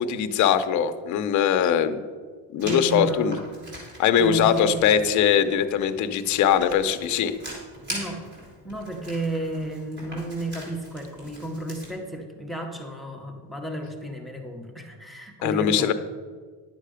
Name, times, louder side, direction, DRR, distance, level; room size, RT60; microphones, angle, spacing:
voice 1, 0.0-2.0 2.5-3.4 4.0-7.3 15.4-15.9, left 8 dB, 45° left, 9 dB, 0.7 m, -21 dB
voice 2, 2.6-3.3 4.2-5.0 7.9-8.2 8.6-15.9, right 2 dB, ahead, 3 dB, 0.8 m, -32 dB
Writing, 2.6-11.9, equal, 25° right, 3.1 m, -42 dB
10.5 x 6.6 x 5.0 m, 1.5 s
cardioid pair, 165°, 42 cm